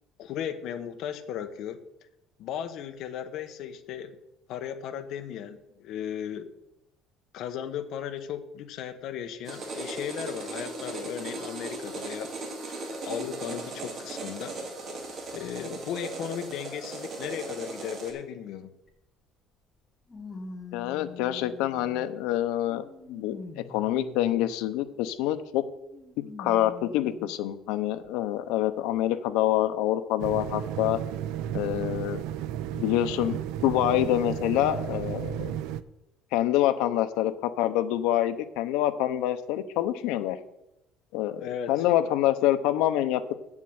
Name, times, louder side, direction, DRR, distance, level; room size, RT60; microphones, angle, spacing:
voice 1, 0.2-1.8 2.4-4.2 4.5-6.5 7.3-12.3 13.0-14.6 15.3-18.7 41.4-41.9, left 9 dB, 50° left, 8 dB, 1.0 m, -36 dB
sound 1, 9.4-18.1, right 2 dB, 35° right, 2.1 m, -37 dB
sound 2, 18.9-19.0 20.1-22.1 22.7-24.7 25.9-27.3 28.0-28.1 29.3-29.4, left 4 dB, 15° left, 1.4 m, -44 dB
voice 2, 20.7-25.6 26.4-31.0 31.5-32.2 32.7-35.5 36.3-40.4 41.1-41.4 41.7-43.3, left 13 dB, 85° left, 10 dB, 0.8 m, -26 dB
sound 3, 30.2-35.8, right 11 dB, 80° right, 0.5 m, -33 dB
7.6 x 7.4 x 8.0 m, 0.86 s
cardioid pair, 180°, 0 cm